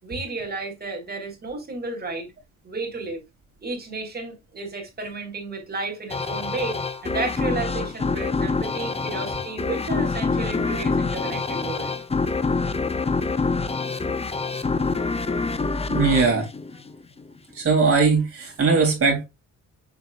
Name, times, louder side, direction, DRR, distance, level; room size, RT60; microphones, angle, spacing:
voice 1, 0.0-2.3 2.6-3.2 3.6-11.9, right 3 dB, 30° right, 3.5 m, -32 dB
sound 1, 6.1-17.3, left 4 dB, 20° left, 0.7 m, -26 dB
voice 2, 15.9-16.5 17.5-19.3, right 4 dB, 45° right, 3.3 m, -20 dB
7.3 x 5.9 x 2.5 m
cardioid pair, 90°, 30 cm